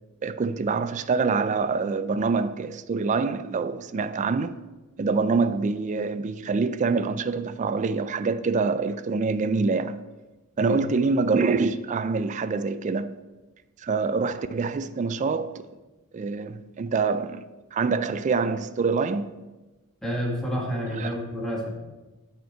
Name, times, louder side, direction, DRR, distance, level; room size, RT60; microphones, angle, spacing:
voice 1, 0.2-4.6 5.0-10.0 10.6-13.2 13.8-15.7 16.1-17.4 17.7-19.3 21.0-21.1, right 4 dB, 35° right, 0.3 m, -25 dB
voice 2, 20.0-21.7, equal, ahead, 1.7 m, -29 dB
9.2 x 4.5 x 4.6 m
head